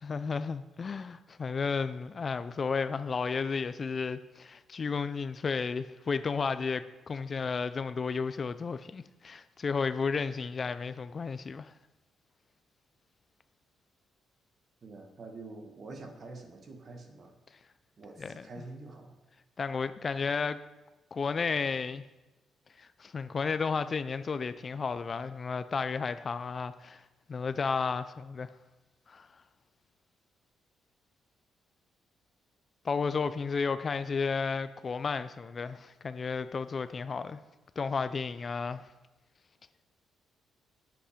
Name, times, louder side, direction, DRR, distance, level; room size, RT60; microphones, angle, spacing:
voice 1, 0.0-11.7 18.2-18.6 19.6-20.6 21.1-22.0 22.8-27.0 27.3-28.5 29.1-29.3 32.8-37.4 37.8-38.8, left 5 dB, 35° left, 0.3 m, -33 dB
voice 2, 14.8-17.3 18.0-19.2, right 3 dB, 40° right, 1.3 m, -46 dB
8.4 x 7.9 x 5.0 m
cardioid pair, 135°, 0 cm